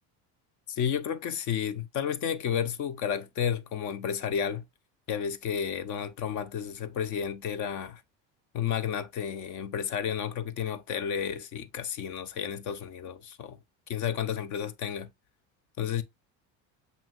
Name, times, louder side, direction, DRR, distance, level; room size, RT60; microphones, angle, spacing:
voice 1, 0.7-4.6 5.1-8.0 8.5-13.6 13.9-15.1 15.8-16.0, left 8 dB, 45° left, 0.5 m, -32 dB
7.3 x 2.7 x 2.4 m
cardioid pair, 135°, 42 cm